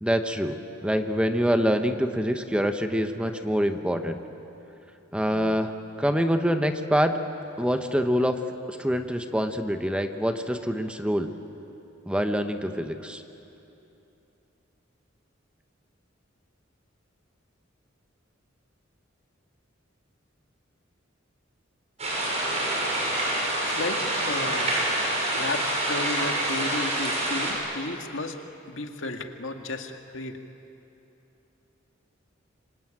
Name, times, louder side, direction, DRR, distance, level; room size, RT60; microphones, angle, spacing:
voice 1, 0.0-4.2 5.1-7.1 7.6-8.4 8.7-11.3 12.1-13.2, equal, 5° right, 6 dB, 1.1 m, -25 dB
sound 1, 22.0-27.5, right 1 dB, 35° right, 7.4 m, -27 dB
voice 2, 23.6-24.7 25.3-28.4 28.7-30.4, left 2 dB, 75° left, 5 dB, 1.9 m, -33 dB
27.0 x 24.5 x 8.9 m, 2.9 s
head